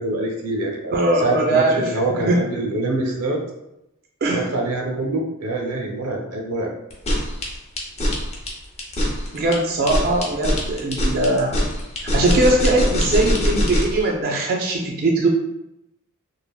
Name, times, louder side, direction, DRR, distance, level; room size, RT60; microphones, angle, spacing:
voice 1, 0.0-3.4 4.3-6.7, right 2 dB, 90° right, 1 dB, 0.6 m, -25 dB
voice 2, 0.9-1.9 2.3-2.4 4.2-4.5 9.3-11.5 12.0-15.3, right 2 dB, 45° right, 1 dB, 0.3 m, -20 dB
sound 1, 6.9-14.0, equal, 30° left, 0.5 m, -22 dB
3.3 x 2.1 x 2.3 m, 0.87 s
head